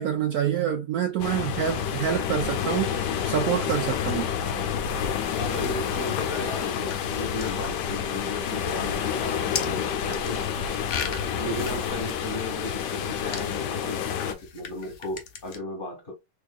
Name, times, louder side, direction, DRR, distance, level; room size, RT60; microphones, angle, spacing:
voice 1, 0.0-4.3, right 9 dB, 70° right, 0.9 m, -27 dB
sound 1, 1.2-14.3, left 8 dB, 80° left, 1.3 m, -29 dB
sound 2, 1.5-15.6, left 6 dB, 60° left, 0.8 m, -41 dB
voice 2, 5.4-10.8 11.4-16.1, left 2 dB, 30° left, 1.5 m, -35 dB
3.6 x 3.5 x 2.2 m
omnidirectional pair, 1.9 m